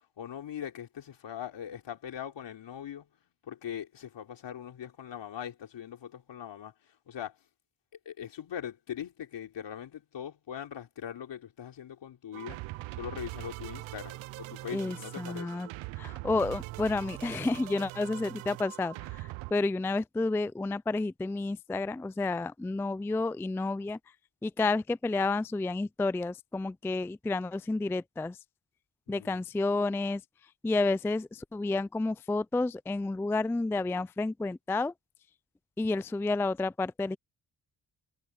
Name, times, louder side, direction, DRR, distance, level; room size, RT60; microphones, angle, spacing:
voice 1, 0.2-3.1 3.4-6.7 7.1-7.4 8.1-12.6 13.0-15.7 29.1-29.4, left 9 dB, 65° left, 3.5 m, -41 dB
sound 1, 12.3-19.5, right 20 dB, 90° right, 0.7 m, -42 dB
voice 2, 14.7-15.7 16.0-24.0 24.4-28.4 29.1-30.2 30.6-34.9 35.8-37.2, left 3 dB, 5° left, 0.3 m, -30 dB
supercardioid pair, 60°, 46 cm